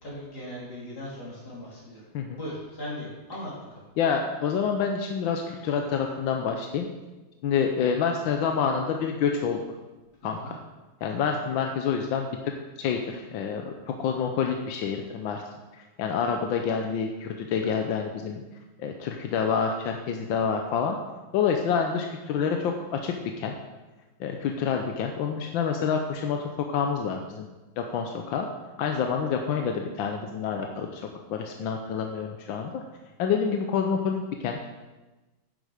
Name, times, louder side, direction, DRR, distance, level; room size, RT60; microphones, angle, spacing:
voice 1, 0.0-2.0 2.4-3.5 10.2-10.5, left 1 dB, 55° left, -6 dB, 4.2 m, -38 dB
voice 2, 4.0-6.9 7.4-9.6 10.2-10.6 11.0-12.4 12.8-15.4 15.7-18.4 18.8-21.0 21.3-23.5 24.2-27.5 27.8-28.5 28.8-32.8 33.2-34.7, left 6 dB, 90° left, 3 dB, 1.5 m, -28 dB
10.5 x 7.8 x 5.0 m, 1.1 s
omnidirectional pair, 2.1 m